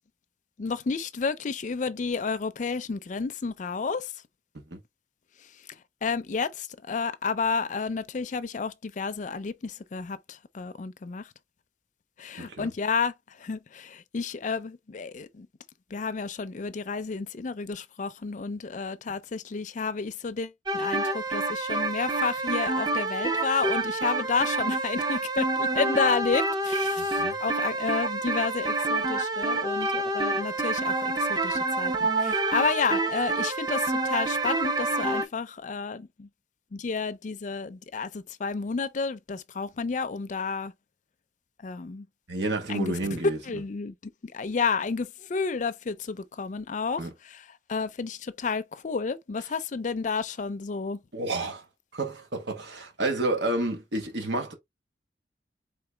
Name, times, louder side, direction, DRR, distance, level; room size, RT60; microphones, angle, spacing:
voice 1, 0.6-4.1 6.0-11.2 12.2-13.1 13.4-15.5 15.9-36.3 36.7-40.7 41.6-42.1 42.7-43.2 43.5-43.9 44.2-51.0, left 5 dB, 45° left, 0.4 m, -31 dB
voice 2, 12.4-12.7 27.0-27.4 42.3-43.6 47.0-47.1 51.1-51.6 51.9-54.5, right 2 dB, 80° right, 1.4 m, -30 dB
sound 1, 20.7-35.2, right 2 dB, 25° right, 0.5 m, -27 dB
4.0 x 3.5 x 3.3 m
head